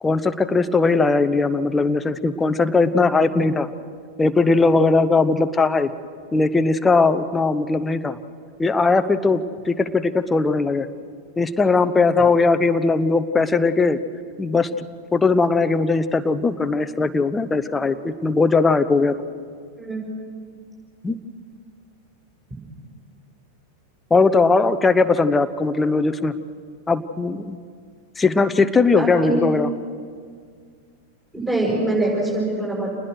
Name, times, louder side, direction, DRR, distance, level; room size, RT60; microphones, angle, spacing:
voice 1, 0.0-3.7 4.2-5.9 6.3-8.2 8.6-10.9 11.4-14.0 14.4-14.9 15.1-19.1 21.0-21.2 24.1-26.3 26.9-27.6 28.2-29.7, left 3 dB, 15° left, 11 dB, 0.9 m, -19 dB
voice 2, 29.0-29.4 31.3-32.9, right 2 dB, 15° right, -5 dB, 6.5 m, -23 dB
28.5 x 20.0 x 6.4 m, 2.1 s
figure-of-eight pair, 90°, 0 cm